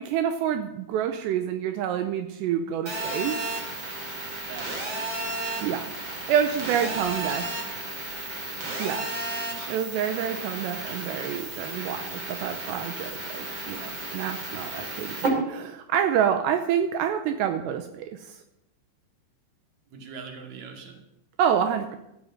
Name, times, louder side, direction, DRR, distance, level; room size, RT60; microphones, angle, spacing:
voice 1, 0.0-3.4 5.6-5.8 6.3-7.4 8.8-9.1 9.4-18.4 21.4-22.0, right 9 dB, 80° right, 7 dB, 2.8 m, -27 dB
Telephone, 2.9-15.3, right 2 dB, 30° right, 2.7 m, -33 dB
voice 2, 4.5-5.1 6.6-7.1 7.4-7.6 19.9-21.0, right 5 dB, 45° right, 3 dB, 2.9 m, -42 dB
13.0 x 9.1 x 7.8 m, 0.85 s
omnidirectional pair, 5.2 m